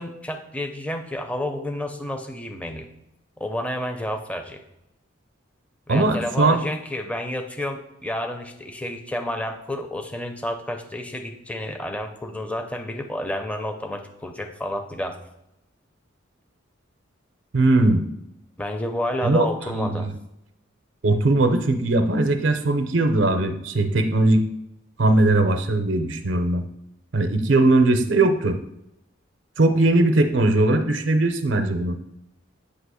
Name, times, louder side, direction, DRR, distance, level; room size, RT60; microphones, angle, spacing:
voice 1, 0.0-2.9 3.4-4.6 5.9-15.2 18.6-20.1, left 1 dB, 5° left, 5 dB, 0.6 m, -30 dB
voice 2, 5.9-6.6 17.5-18.1 19.2-20.1 21.0-24.4 25.0-26.6 27.1-28.6 29.6-32.0, right 2 dB, 65° right, 7 dB, 0.6 m, -20 dB
8.3 x 2.9 x 6.2 m, 0.86 s
head